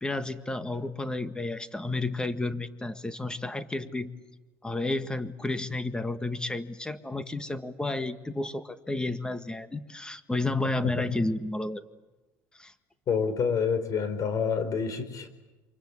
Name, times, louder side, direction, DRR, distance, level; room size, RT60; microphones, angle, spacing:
voice 1, 0.0-4.1 4.6-11.8 12.6-12.7, left 2 dB, 10° left, 11 dB, 1.7 m, -31 dB
voice 2, 13.1-15.3, left 6 dB, 50° left, 11 dB, 4.6 m, -28 dB
29.0 x 25.0 x 8.3 m, 1.1 s
supercardioid pair, 100°, 8 cm